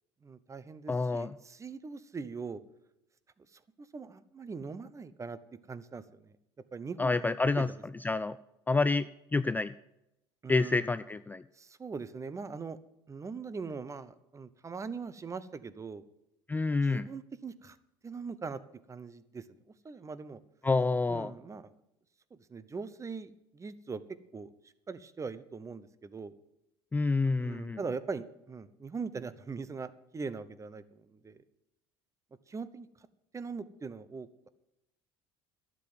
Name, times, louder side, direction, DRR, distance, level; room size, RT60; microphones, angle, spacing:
voice 1, 0.2-2.6 3.4-5.4 5.7-6.4 6.7-7.6 10.4-10.9 11.6-12.8 13.1-16.0 16.8-17.8 18.0-18.6 18.9-19.4 19.8-20.4 21.1-21.7 22.5-24.0 24.3-24.5 24.9-26.4 27.4-31.4 32.5-32.9 33.3-34.3, right 4 dB, 25° right, 15 dB, 0.9 m, -41 dB
voice 2, 0.9-1.3 7.0-7.7 8.0-8.4 8.7-9.7 10.5-11.4 16.5-17.1 20.6-21.3 26.9-27.8, left 3 dB, 15° left, 14 dB, 0.4 m, -28 dB
11.5 x 7.7 x 7.8 m, 0.85 s
hypercardioid pair, 75°, 13 cm